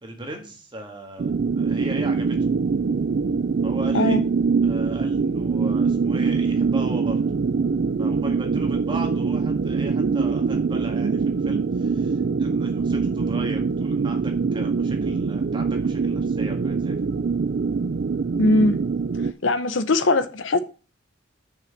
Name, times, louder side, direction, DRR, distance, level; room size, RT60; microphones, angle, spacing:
voice 1, 0.0-2.4 3.6-4.2 4.6-7.2 8.0-17.0, right 1 dB, 25° right, 1.7 m, -38 dB
sound 1, 1.2-19.3, right 5 dB, 55° right, 0.4 m, -23 dB
voice 2, 18.4-18.8 19.4-20.6, left 2 dB, 75° left, 0.7 m, -20 dB
6.1 x 5.6 x 6.4 m
head